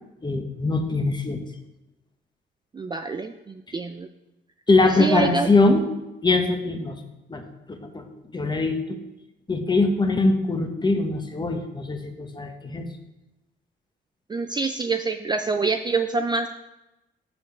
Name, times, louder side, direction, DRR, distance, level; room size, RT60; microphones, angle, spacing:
voice 1, 0.2-1.4 4.7-5.8 6.2-7.0 7.3-7.4 7.7-8.0 8.3-9.0 9.5-12.9, left 2 dB, 20° left, 5 dB, 1.1 m, -22 dB
voice 2, 2.7-4.1 5.0-5.5 14.3-16.5, right 4 dB, 20° right, 7 dB, 0.4 m, -26 dB
7.0 x 5.1 x 6.0 m, 0.95 s
cardioid pair, 90°, 20 cm